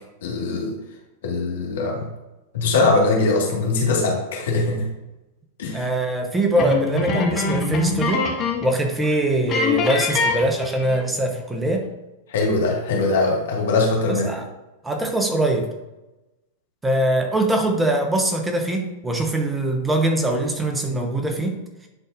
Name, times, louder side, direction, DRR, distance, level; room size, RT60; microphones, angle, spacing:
voice 1, 0.2-0.7 1.2-2.1 2.5-4.9 5.6-5.8 12.3-14.3, left 3 dB, 70° left, -1 dB, 1.8 m, -21 dB
voice 2, 5.7-8.3 8.6-11.9 14.1-14.5 14.8-15.7 16.8-21.6, right 1 dB, 10° right, 3 dB, 1.0 m, -22 dB
sound 1, 6.6-8.8 9.0-9.1 9.5-11.1, left 4 dB, 35° left, 1.7 m, -24 dB
10.0 x 4.1 x 2.6 m, 1.0 s
hypercardioid pair, 100°, 0 cm